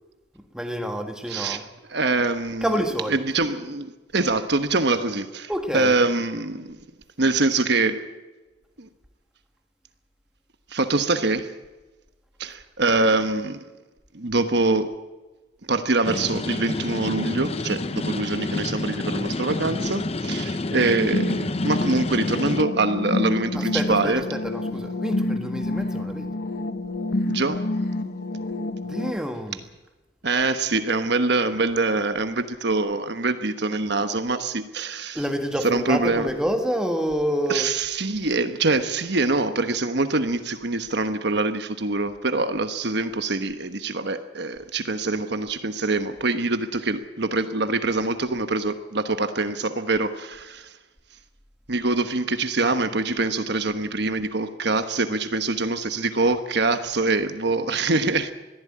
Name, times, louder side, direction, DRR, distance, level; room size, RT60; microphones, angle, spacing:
voice 1, 0.5-1.6 2.6-3.3 5.5-5.9 23.5-26.3 28.8-29.6 35.1-37.7, equal, 5° right, 1.6 m, -28 dB
voice 2, 1.3-2.7 3.1-6.8 7.2-8.0 8.8-8.9 10.7-11.6 12.4-13.6 14.1-14.9 15.7-24.2 27.3-27.7 30.2-35.2 35.6-36.3 37.5-50.8 51.7-58.3, right 3 dB, 55° right, 1.2 m, -24 dB
sound 1, 16.0-22.6, left 2 dB, 30° left, 0.7 m, -29 dB
sound 2, 21.1-29.1, left 2 dB, 55° left, 1.3 m, -28 dB
21.5 x 15.0 x 8.7 m
head